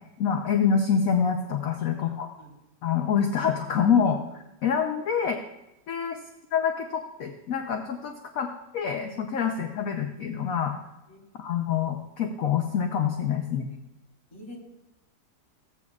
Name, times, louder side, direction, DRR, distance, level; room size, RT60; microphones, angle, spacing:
voice 1, 0.2-2.3 2.8-4.2 4.6-5.4 5.9-6.2 6.5-10.8 11.4-13.7, left 7 dB, 60° left, 4 dB, 1.0 m, -26 dB
voice 2, 1.8-2.5 3.9-4.1 11.1-11.2 14.3-14.6, left 1 dB, 45° left, -4 dB, 4.1 m, -45 dB
15.5 x 8.4 x 2.4 m, 0.95 s
omnidirectional pair, 1.9 m